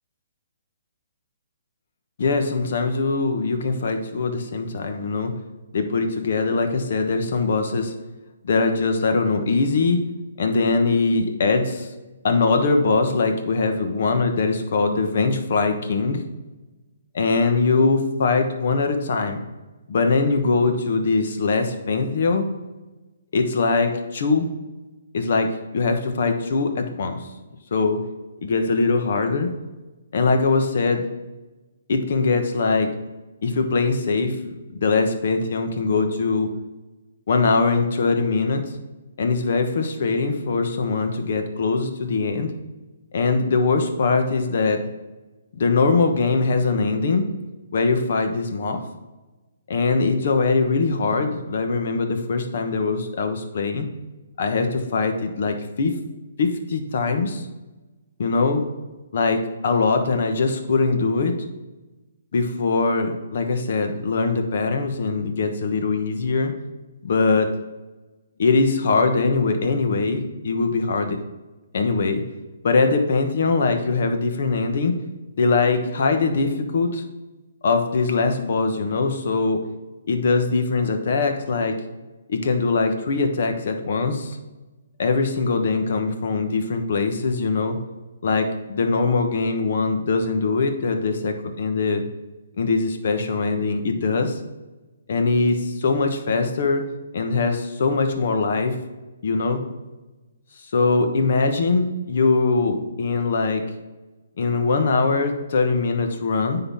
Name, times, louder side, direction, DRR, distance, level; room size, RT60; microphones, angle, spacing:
voice 1, 2.2-5.3 5.7-7.9 8.4-10.0 10.4-11.9 12.2-16.2 17.1-19.4 19.9-22.5 23.3-24.5 25.1-27.2 27.7-28.0 28.4-29.5 30.1-31.1 31.9-32.9 33.4-36.5 37.3-38.6 39.2-42.5 43.1-44.8 45.5-47.2 47.7-48.8 49.7-53.9 54.4-56.0 56.4-57.4 58.2-58.6 59.1-61.3 62.3-66.5 67.0-67.5 68.4-71.2 71.7-72.2 72.6-74.9 75.4-77.0 77.6-79.6 80.1-81.8 82.3-84.4 85.0-87.8 88.2-92.0 92.6-94.4 95.1-96.9 97.1-98.8 99.2-99.6 100.7-103.6 104.4-106.6, left 4 dB, 60° left, 6 dB, 1.1 m, -22 dB
9.7 x 3.9 x 3.6 m, 1.1 s
hypercardioid pair, 150°, 0 cm